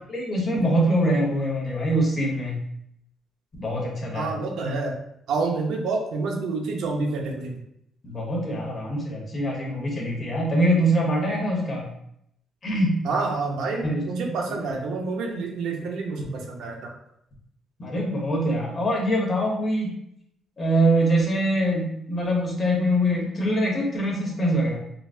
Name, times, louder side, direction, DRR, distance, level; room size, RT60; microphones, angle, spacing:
voice 1, 0.1-2.6 3.6-4.3 8.0-11.9 12.6-13.0 13.8-14.2 17.8-19.9 20.6-24.8, right 1 dB, 40° left, -2 dB, 1.1 m, -24 dB
voice 2, 4.1-5.0 5.3-7.5 13.0-16.8, right 3 dB, 80° right, 1 dB, 0.6 m, -28 dB
3.8 x 2.0 x 2.5 m, 0.74 s
cardioid pair, 90°, 0 cm